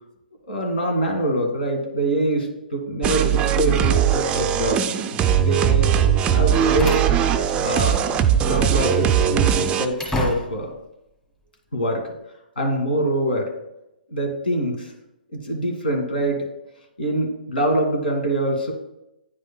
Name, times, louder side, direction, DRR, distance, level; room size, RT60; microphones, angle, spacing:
voice 1, 0.5-4.8 5.4-5.9 6.3-7.1 7.6-8.0 8.3-10.7 11.7-12.0 12.6-13.5 14.1-14.9 15.3-16.5 17.0-18.7, right 1 dB, 80° left, 1 dB, 1.9 m, -24 dB
sound 1, 3.0-9.9, right 9 dB, 20° right, 0.4 m, -20 dB
Slam, 6.2-8.2 8.5-8.7 9.2-10.8, left 1 dB, 10° left, 1.6 m, -32 dB
9.5 x 5.2 x 2.2 m, 0.87 s
figure-of-eight pair, 125°, 5 cm